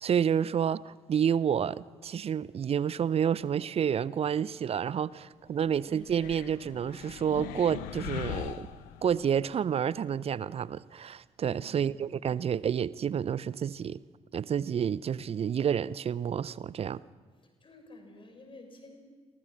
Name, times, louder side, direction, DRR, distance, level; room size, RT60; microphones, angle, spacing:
voice 1, 0.0-8.7 9.0-14.0 14.3-17.0, right 8 dB, 40° right, 20 dB, 0.7 m, -29 dB
voice 2, 5.5-6.0 11.5-11.9 17.4-19.0, left 2 dB, 35° left, 4 dB, 6.5 m, -52 dB
sound 1, 6.0-9.4, left 12 dB, 65° left, 1.0 m, -40 dB
29.5 x 24.5 x 6.1 m, 1.5 s
figure-of-eight pair, 40°, 15 cm